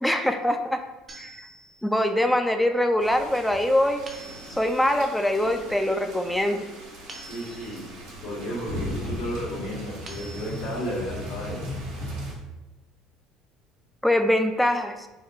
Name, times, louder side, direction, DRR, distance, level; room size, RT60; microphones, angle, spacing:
voice 1, 0.0-0.8 1.2-1.3 1.8-4.1 4.6-6.7 14.0-15.0, left 1 dB, 5° left, 6 dB, 0.3 m, -23 dB
sound 1, 1.1-2.0 4.1-4.9 7.1-8.0 10.1-11.0, right 2 dB, 35° right, 0.7 m, -46 dB
sound 2, 3.0-12.3, equal, 85° right, 1.4 m, -37 dB
voice 2, 7.2-7.8 8.2-11.6, equal, 75° left, -9 dB, 1.4 m, -33 dB
3.7 x 2.2 x 3.1 m, 1.1 s
hypercardioid pair, 75°, 0 cm